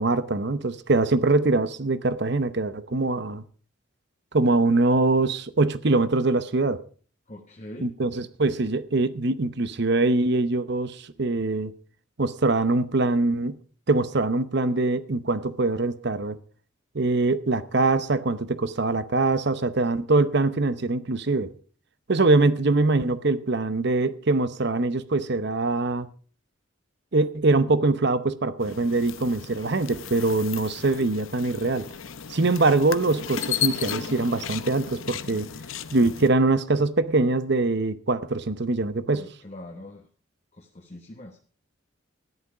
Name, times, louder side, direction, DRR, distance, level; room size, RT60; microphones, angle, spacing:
voice 1, 0.0-3.4 4.3-6.8 7.8-11.7 12.2-13.6 13.9-16.4 16.9-21.5 22.1-26.1 27.1-31.9 32.3-35.5 35.9-39.3, right 3 dB, 55° right, 0.8 m, -23 dB
voice 2, 7.3-7.9 39.0-40.0 40.6-41.4, left 1 dB, 30° left, 1.1 m, -42 dB
sound 1, 28.6-36.3, left 9 dB, 75° left, 0.8 m, -35 dB
14.0 x 11.0 x 4.9 m
head